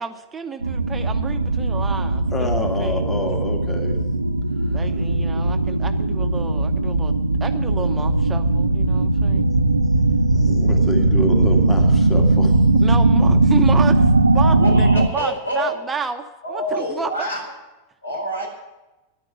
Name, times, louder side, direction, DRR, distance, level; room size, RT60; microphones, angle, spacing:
voice 1, 0.0-3.0 4.7-9.5 12.8-17.3, right 5 dB, 15° right, 6 dB, 0.9 m, -31 dB
sound 1, 0.6-15.1, right 2 dB, 80° right, 0.6 m, -18 dB
voice 2, 2.3-4.0 10.3-12.8, left 1 dB, 15° left, 3 dB, 2.1 m, -28 dB
voice 3, 14.4-15.7 16.4-17.4 18.0-18.5, equal, 75° left, 1 dB, 4.6 m, -26 dB
11.5 x 9.9 x 9.5 m, 1.0 s
figure-of-eight pair, 90°, 0 cm